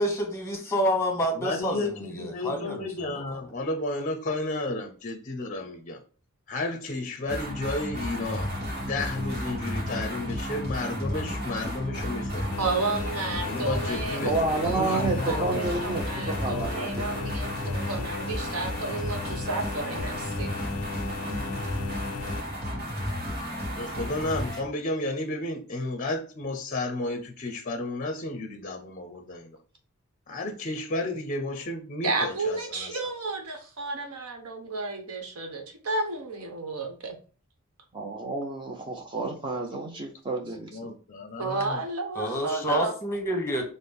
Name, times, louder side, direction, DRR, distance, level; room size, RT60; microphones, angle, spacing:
voice 1, 0.0-3.4 42.1-43.6, equal, 10° left, 1.0 m, -28 dB
voice 2, 1.4-6.0 6.5-8.5 8.8-12.5 13.5-15.7 23.8-29.5 30.3-32.9 40.5-41.8, left 2 dB, 35° left, 0.5 m, -32 dB
sound 1, 7.3-24.7, equal, 45° right, 1.2 m, -32 dB
sound 2, 12.5-22.4, left 7 dB, 90° left, 0.4 m, -38 dB
voice 3, 12.6-14.2 14.6-20.6 32.0-37.2 41.4-42.9, right 3 dB, 75° right, 1.0 m, -32 dB
voice 4, 14.2-17.2 37.9-40.9, right 3 dB, 20° right, 0.5 m, -30 dB
5.8 x 2.0 x 3.5 m
head